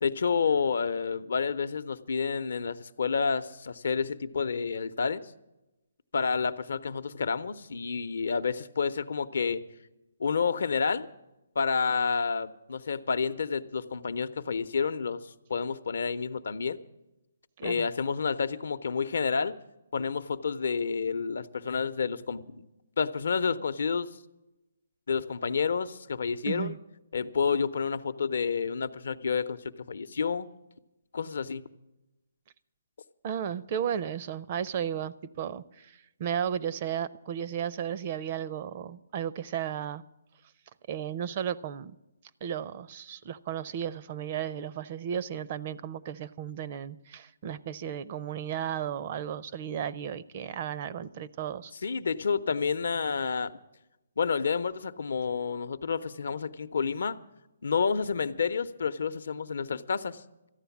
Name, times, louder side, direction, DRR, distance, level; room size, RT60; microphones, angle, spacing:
voice 1, 0.0-5.2 6.1-9.6 10.2-11.1 11.5-15.2 15.5-16.8 17.6-19.5 19.9-22.6 23.0-24.1 25.1-26.8 27.1-29.6 29.9-30.5 31.1-31.6 51.8-53.5 54.2-57.2 57.6-60.2, left 5 dB, 70° left, 0.7 m, -29 dB
voice 2, 26.5-26.8 33.2-40.0 40.9-42.0 42.4-51.7, right 9 dB, 35° right, 0.4 m, -34 dB
14.0 x 9.9 x 7.1 m
hypercardioid pair, 160°, 0 cm